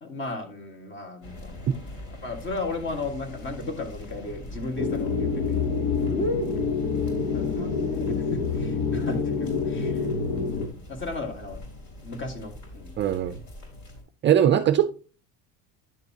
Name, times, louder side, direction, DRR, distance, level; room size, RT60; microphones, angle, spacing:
voice 1, 0.0-5.6 6.0-6.6 7.3-10.1 10.4-11.6 12.0-13.4, left 2 dB, 30° left, 6 dB, 1.8 m, -35 dB
sound 1, 1.2-14.0, left 1 dB, 50° left, 3.9 m, -42 dB
sound 2, 4.8-10.7, left 5 dB, 65° left, 1.2 m, -27 dB
voice 2, 13.0-13.4 14.2-14.9, right 10 dB, 30° right, 9 dB, 0.5 m, -20 dB
10.5 x 6.7 x 2.8 m, 0.37 s
cardioid pair, 155°, 38 cm